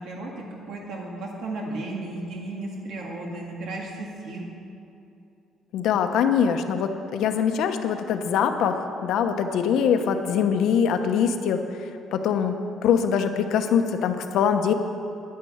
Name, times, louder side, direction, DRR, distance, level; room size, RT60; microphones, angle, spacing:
voice 1, 0.0-4.5, right 2 dB, 75° right, -1 dB, 2.0 m, -34 dB
voice 2, 5.7-11.6 12.1-12.5 12.8-14.7, left 7 dB, 70° left, 7 dB, 1.0 m, -23 dB
10.5 x 9.6 x 8.8 m, 2.7 s
cardioid pair, 160°, 0 cm